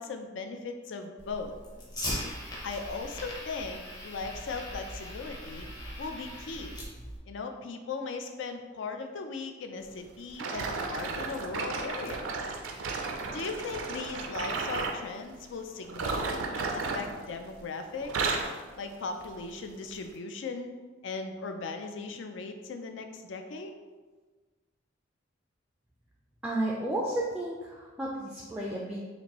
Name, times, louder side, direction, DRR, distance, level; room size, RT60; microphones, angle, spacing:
voice 1, 0.0-1.5 2.6-5.7 6.0-6.8 7.3-12.2 13.3-18.3 18.8-20.7 21.0-23.7, left 4 dB, 65° left, 6 dB, 0.4 m, -38 dB
Fire, 1.2-7.2, equal, 20° left, 0.7 m, -40 dB
sound 1, 10.4-15.0 15.9-17.7 18.0-18.6 19.2-19.4 20.1-20.2, right 4 dB, 90° right, 0.4 m, -33 dB
voice 2, 26.4-29.0, right 1 dB, 5° right, -4 dB, 0.3 m, -32 dB
4.2 x 2.5 x 2.9 m, 1.3 s
head